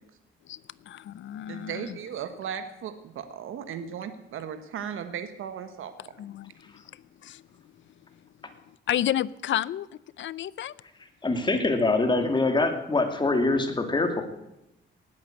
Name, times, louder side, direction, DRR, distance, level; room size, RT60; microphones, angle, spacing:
voice 1, 0.5-2.0 6.2-7.4 8.9-9.9 10.2-10.7, left 11 dB, 65° left, 20 dB, 0.6 m, -31 dB
voice 2, 1.5-5.9, right 8 dB, 85° right, 9 dB, 1.4 m, -36 dB
voice 3, 11.2-14.2, left 2 dB, 20° left, 5 dB, 2.6 m, -24 dB
19.0 x 8.8 x 7.8 m, 0.87 s
cardioid pair, 105°, 21 cm